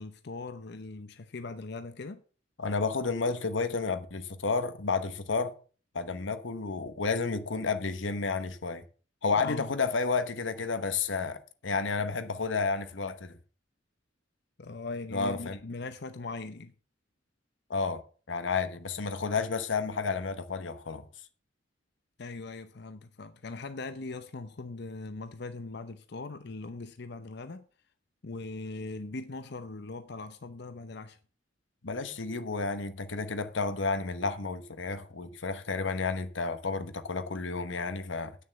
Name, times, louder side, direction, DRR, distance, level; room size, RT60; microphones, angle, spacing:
voice 1, 0.0-2.2 9.4-9.7 14.6-16.7 22.2-27.6 28.2-31.2, left 3 dB, 60° left, 0.7 m, -40 dB
voice 2, 2.6-5.6 5.9-8.8 9.2-13.4 15.1-15.6 17.7-21.0 31.8-38.4, left 4 dB, 90° left, 1.1 m, -31 dB
9.1 x 6.7 x 6.8 m
head